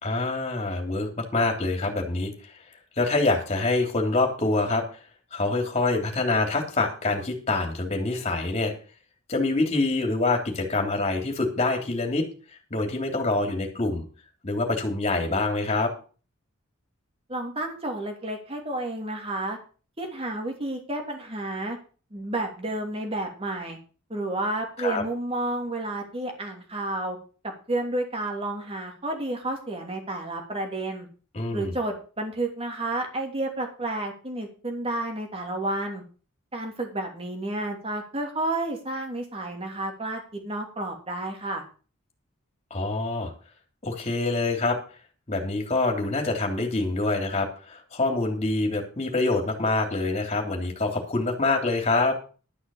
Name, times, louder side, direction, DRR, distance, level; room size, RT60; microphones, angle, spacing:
voice 1, 0.0-2.3 3.0-4.8 5.3-8.7 9.3-12.3 12.7-14.0 14.4-15.9 24.8-25.0 31.3-31.7 42.7-43.3 43.8-44.8 45.3-52.2, left 2 dB, 30° left, 3 dB, 3.1 m, -25 dB
voice 2, 17.3-19.6 20.0-21.8 22.1-23.8 24.1-27.2 27.4-31.1 31.5-36.0 36.5-41.6, right 2 dB, 25° right, 2 dB, 2.9 m, -31 dB
12.0 x 6.4 x 7.1 m, 0.38 s
head